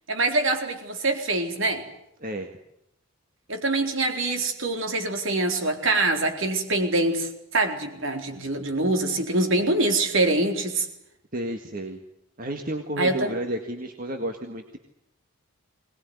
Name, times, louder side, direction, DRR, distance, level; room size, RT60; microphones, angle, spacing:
voice 1, 0.1-1.8 3.5-10.9 13.0-13.3, right 2 dB, 60° right, 5 dB, 4.1 m, -24 dB
voice 2, 11.3-12.0 12.4-14.8, right 1 dB, 40° right, 5 dB, 1.9 m, -31 dB
22.5 x 20.0 x 9.6 m, 0.80 s
head